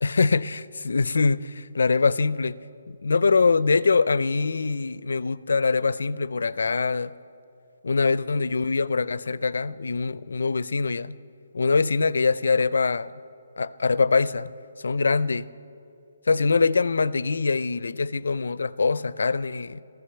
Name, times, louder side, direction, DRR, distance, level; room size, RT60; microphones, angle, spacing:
voice 1, 0.0-2.6 2.9-7.1 7.8-11.2 11.5-13.1 13.6-14.5 14.8-15.5 16.3-19.8, left 4 dB, 80° left, 0.4 m, -23 dB
14.5 x 14.5 x 6.9 m
hypercardioid pair, 160°, 0 cm